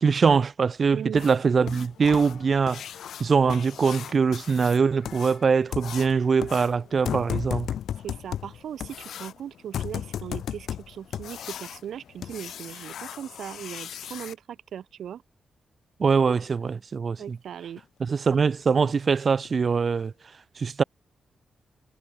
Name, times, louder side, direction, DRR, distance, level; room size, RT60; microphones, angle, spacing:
voice 1, 0.0-2.8 3.2-7.7 16.0-17.4 18.0-20.1 20.6-20.8, right 5 dB, 35° right, 0.8 m, -23 dB
voice 2, 0.9-1.2 8.0-15.2 17.2-17.8, right 9 dB, 80° right, 2.3 m, -38 dB
sound 1, 1.1-14.3 16.7-16.8 17.2-17.3 17.8-17.9 18.3-18.4 18.9-19.1 19.4-19.5 20.0-20.1, left 9 dB, 85° left, 4.1 m, -36 dB
wide cardioid pair, 165°, 0 cm